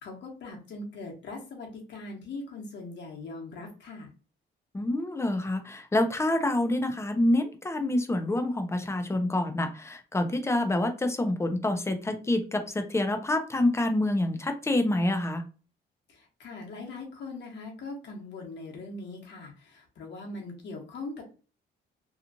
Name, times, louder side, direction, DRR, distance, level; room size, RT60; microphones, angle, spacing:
voice 1, 0.0-4.1 16.1-21.2, left 3 dB, 65° left, -1 dB, 1.2 m, -41 dB
voice 2, 4.7-15.4, left 1 dB, 15° left, 6 dB, 0.6 m, -27 dB
2.9 x 2.4 x 2.5 m, 0.35 s
cardioid pair, 90°, 20 cm